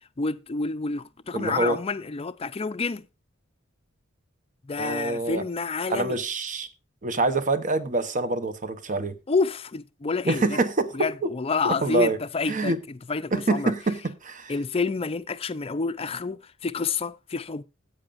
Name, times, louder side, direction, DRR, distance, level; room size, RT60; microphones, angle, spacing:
voice 1, 0.2-3.1 4.6-6.2 9.3-10.6 10.9-13.7 14.5-17.6, left 4 dB, 30° left, 0.5 m, -29 dB
voice 2, 1.3-1.8 4.8-5.4 5.9-6.7 7.0-9.2 10.3-11.3 11.6-12.2 12.5-12.8 13.3-14.5, right 2 dB, 40° right, 0.9 m, -26 dB
14.0 x 8.8 x 2.5 m
head